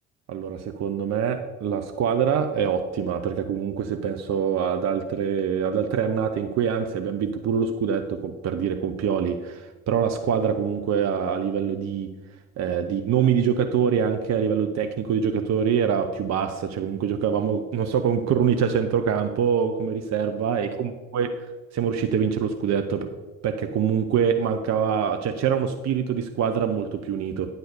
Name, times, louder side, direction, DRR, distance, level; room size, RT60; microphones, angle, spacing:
voice 1, 0.3-12.1 12.6-21.3 21.7-23.1 23.4-27.5, right 7 dB, 40° right, 7 dB, 0.8 m, -24 dB
9.3 x 4.0 x 6.6 m, 1.2 s
figure-of-eight pair, 55°, 40 cm